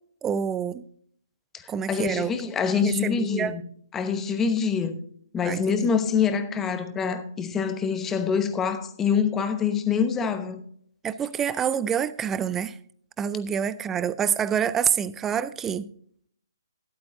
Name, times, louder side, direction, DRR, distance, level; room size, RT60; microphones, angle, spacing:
voice 1, 0.2-0.9 1.7-2.3 2.7-3.6 5.4-5.9 11.0-12.8 13.2-15.9, right 8 dB, 10° right, 0.4 m, -27 dB
voice 2, 1.5-3.6 3.9-5.0 5.3-10.6, left 6 dB, 10° left, 0.9 m, -25 dB
13.0 x 11.0 x 2.7 m
figure-of-eight pair, 135°, 2 cm